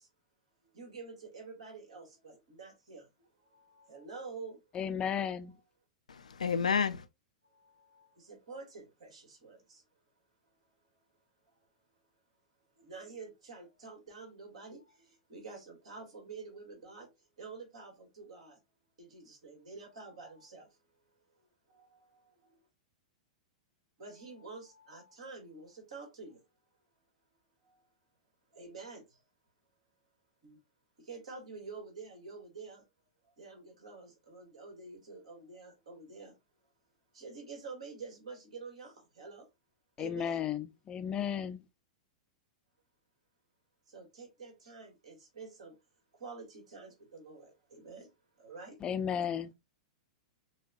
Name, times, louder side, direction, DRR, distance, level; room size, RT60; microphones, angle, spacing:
voice 1, 0.7-3.0 3.9-4.6 7.9-9.8 12.8-14.8 15.3-17.1 17.4-18.6 19.0-20.7 24.0-26.4 28.5-29.0 30.4-30.6 31.1-32.8 33.4-36.3 37.1-39.4 40.0-40.4 43.9-45.7 46.2-48.1 48.4-48.8, right 4 dB, 65° right, 2.0 m, -48 dB
voice 2, 4.7-5.6 40.0-41.6 48.8-49.5, left 8 dB, 25° left, 0.5 m, -34 dB
voice 3, 6.1-7.1, left 6 dB, 75° left, 0.4 m, -30 dB
6.1 x 2.3 x 2.4 m
figure-of-eight pair, 100°, 4 cm